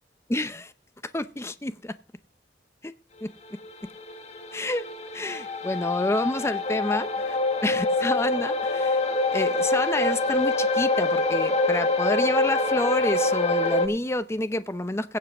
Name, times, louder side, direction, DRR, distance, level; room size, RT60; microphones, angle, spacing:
voice 1, 0.3-0.7 1.1-2.0 2.8-2.9 3.2-3.6 4.5-4.8 5.1-7.4 7.6-9.0 9.3-15.2, left 1 dB, 15° left, 0.6 m, -29 dB
sound 1, 3.5-13.9, left 2 dB, 40° left, 1.2 m, -25 dB
16.5 x 5.6 x 6.0 m
head